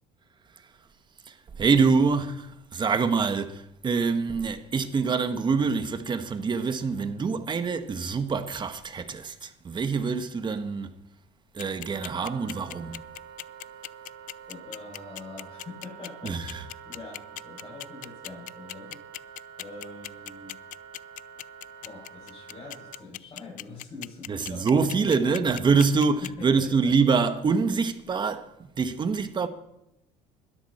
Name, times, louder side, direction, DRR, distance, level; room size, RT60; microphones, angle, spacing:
voice 1, 1.3-10.9 11.5-13.1 16.2-16.7 24.3-28.5 28.8-29.5, right 5 dB, 30° right, 1.5 m, -25 dB
sound 1, 11.6-26.3, left 16 dB, 55° left, 0.5 m, -38 dB
Wind instrument woodwind instrument, 11.8-23.0, right 8 dB, 90° right, 1.8 m, -47 dB
voice 2, 14.5-19.0 19.6-20.6 21.8-25.5 26.2-27.0, left 3 dB, 30° left, 7.2 m, -44 dB
21.0 x 13.5 x 4.5 m
cardioid pair, 115°, 16 cm